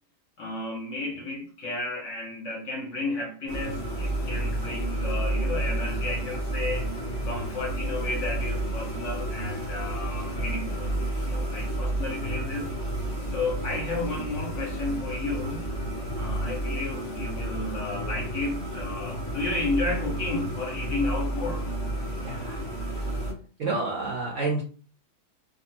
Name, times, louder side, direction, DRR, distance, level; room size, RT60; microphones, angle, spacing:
voice 1, 0.4-6.9 7.2-11.0 11.3-12.7 13.3-15.7 16.2-21.7, left 2 dB, 55° left, 0.9 m, -32 dB
sound 1, 3.5-23.3, right 1 dB, 35° left, 0.3 m, -31 dB
voice 2, 22.2-22.7 22.9-23.1 23.6-24.6, right 3 dB, 70° right, 0.7 m, -30 dB
2.6 x 2.4 x 2.8 m
omnidirectional pair, 1.8 m